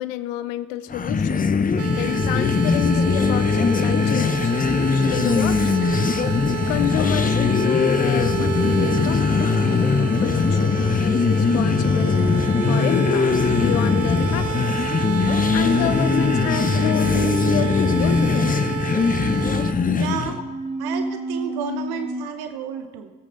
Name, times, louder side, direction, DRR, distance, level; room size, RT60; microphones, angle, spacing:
voice 1, 0.0-1.6 1.9-4.5 4.9-5.8 6.7-14.7 15.3-18.5, left 13 dB, 70° left, 14 dB, 0.7 m, -29 dB
sound 1, 0.9-20.4, left 5 dB, 20° left, 0.7 m, -20 dB
sound 2, 1.8-19.7, right 9 dB, 35° right, 0.7 m, -31 dB
sound 3, 4.4-22.3, right 2 dB, 15° right, 1.6 m, -33 dB
voice 2, 19.9-20.4 20.8-23.1, right 8 dB, 60° right, 8 dB, 0.9 m, -31 dB
17.0 x 8.3 x 3.9 m, 1.4 s
figure-of-eight pair, 45°, 43 cm